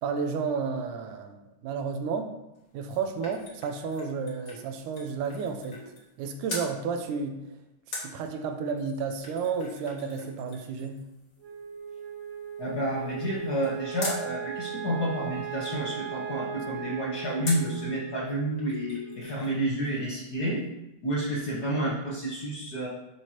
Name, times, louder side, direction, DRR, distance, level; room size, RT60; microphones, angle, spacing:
voice 1, 0.0-2.3 2.7-5.8 6.2-7.4 8.0-11.1, right 5 dB, 80° right, 6 dB, 2.2 m, -32 dB
sound 1, 2.5-6.2 6.5-6.7 7.9-14.3 17.4-17.8 18.3-18.4 18.6-19.6 19.8-19.9, left 2 dB, 45° left, 1.2 m, -42 dB
Wind instrument woodwind instrument, 11.4-19.9, right 9 dB, 60° right, 1.2 m, -38 dB
voice 2, 12.6-20.6 21.0-22.9, right 1 dB, 80° left, -6 dB, 0.8 m, -30 dB
10.5 x 4.8 x 2.9 m, 0.94 s
omnidirectional pair, 3.7 m